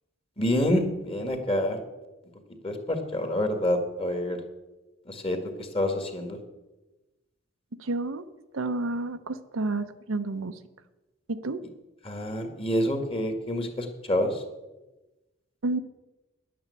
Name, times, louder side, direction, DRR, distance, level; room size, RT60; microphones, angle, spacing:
voice 1, 0.4-1.8 2.6-4.4 5.1-6.4 12.0-14.4, left 1 dB, 25° left, 5 dB, 1.7 m, -27 dB
voice 2, 7.8-8.2 8.5-10.6 11.3-11.6 15.6-15.8, right 2 dB, 90° right, 10 dB, 0.8 m, -30 dB
10.5 x 8.7 x 8.2 m, 1.1 s
head